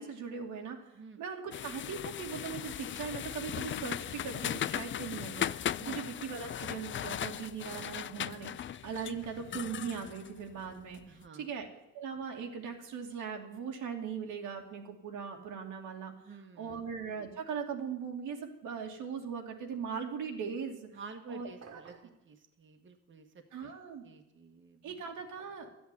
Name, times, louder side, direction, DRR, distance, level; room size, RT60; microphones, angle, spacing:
voice 1, 0.0-0.8 1.2-11.7 11.9-16.1 16.6-20.9 21.3-21.8 23.5-24.0 24.8-25.7, right 6 dB, 85° right, 2 dB, 2.6 m, -40 dB
sound 1, 1.5-11.1, left 10 dB, 40° left, 0.4 m, -38 dB
voice 2, 11.1-11.5 16.2-16.9 20.9-23.7 24.0-25.0, right 4 dB, 40° right, 5 dB, 1.6 m, -51 dB
sound 2, 21.6-22.2, right 6 dB, 55° right, 2.0 m, -52 dB
13.0 x 8.7 x 9.8 m, 0.86 s
cardioid pair, 90°, 30 cm